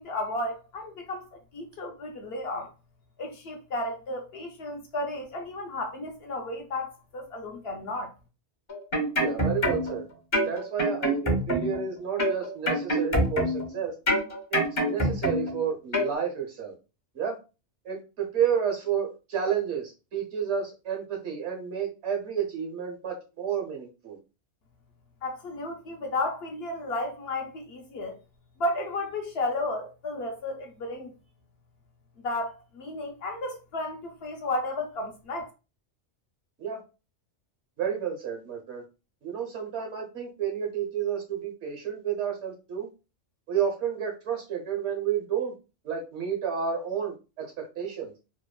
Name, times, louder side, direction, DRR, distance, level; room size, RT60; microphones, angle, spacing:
voice 1, 0.0-2.7 3.2-8.1 25.2-28.2 28.6-31.1 32.2-35.5, left 2 dB, 65° left, 0.7 m, -33 dB
sound 1, 8.7-10.0 10.3-11.8 12.2-13.7 14.1-15.6 15.9-16.1, equal, 30° left, 0.6 m, -26 dB
voice 2, 9.1-10.1 10.4-13.9 14.5-16.7 17.1-17.4 17.8-24.2 36.6-36.8 37.8-38.8 39.2-42.9 43.5-45.5 45.8-48.1, right 8 dB, 70° right, 1.1 m, -31 dB
3.0 x 2.1 x 2.2 m
omnidirectional pair, 1.2 m